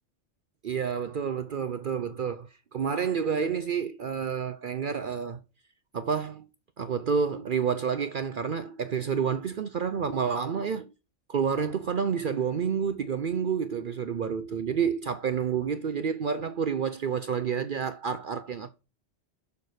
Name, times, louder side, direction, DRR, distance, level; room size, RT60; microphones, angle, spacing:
voice 1, 0.6-5.4 5.9-6.4 6.8-10.9 11.3-18.7, right 6 dB, 55° right, 0.7 m, -29 dB
6.9 x 6.5 x 4.9 m
omnidirectional pair, 1.2 m